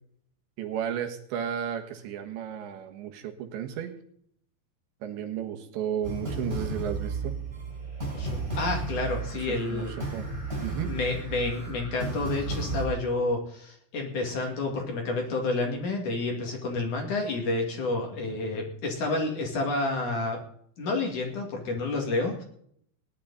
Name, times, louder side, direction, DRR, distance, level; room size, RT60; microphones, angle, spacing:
voice 1, 0.6-3.9 5.0-7.4 9.4-10.3 10.6-10.9, right 9 dB, 80° right, 4 dB, 3.8 m, -33 dB
sound 1, 6.0-12.9, right 3 dB, 10° right, 7.3 m, -33 dB
voice 2, 8.1-9.9 10.9-20.4 20.8-22.4, left 3 dB, 50° left, 2 dB, 3.5 m, -29 dB
18.5 x 11.5 x 4.2 m, 0.65 s
omnidirectional pair, 5.2 m